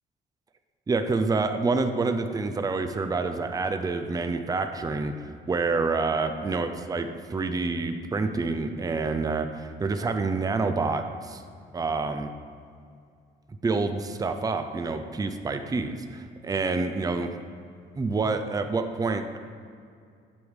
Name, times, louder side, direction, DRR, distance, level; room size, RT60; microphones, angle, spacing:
voice 1, 0.9-5.1 5.5-11.4 11.7-12.3 13.6-17.4 18.0-19.4, right 3 dB, 20° right, 7 dB, 0.5 m, -27 dB
7.8 x 3.5 x 6.4 m, 2.3 s
cardioid pair, 90°, 20 cm